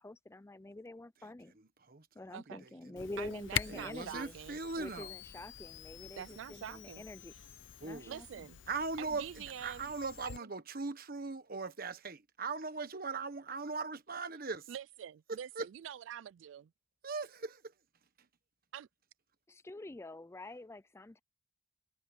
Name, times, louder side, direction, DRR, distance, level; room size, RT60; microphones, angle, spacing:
voice 1, 0.0-1.5 2.2-4.3 4.8-7.3 7.8-8.5 19.5-21.2, left 2 dB, 15° left, 0.4 m, -46 dB
voice 2, 1.6-2.1 2.6-3.1 3.7-5.1 7.8-8.2 8.7-14.7 15.3-15.7 17.0-17.7, right 4 dB, 50° right, 1.4 m, -40 dB
Camera, 3.0-10.4, left 9 dB, 80° left, 0.7 m, -45 dB
voice 3, 3.2-4.6 6.2-7.1 7.3-7.5 8.1-8.6 9.0-9.9 10.2-10.3 14.7-16.7 18.7-18.9, right 9 dB, 90° right, 0.3 m, -46 dB
head